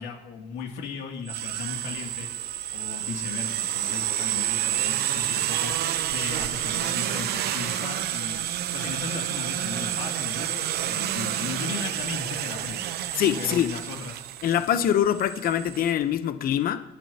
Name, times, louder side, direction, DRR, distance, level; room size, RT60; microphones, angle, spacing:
voice 1, 0.0-2.3 2.7-8.4 8.7-12.8 13.4-14.2, left 5 dB, 85° left, 1 dB, 2.6 m, -36 dB
sound 1, 1.3-15.9, right 12 dB, 70° right, 0.8 m, -29 dB
voice 2, 13.2-13.7 14.4-16.8, left 10 dB, 60° left, 11 dB, 0.8 m, -24 dB
27.0 x 11.0 x 2.9 m, 0.90 s
cardioid pair, 110°, 17 cm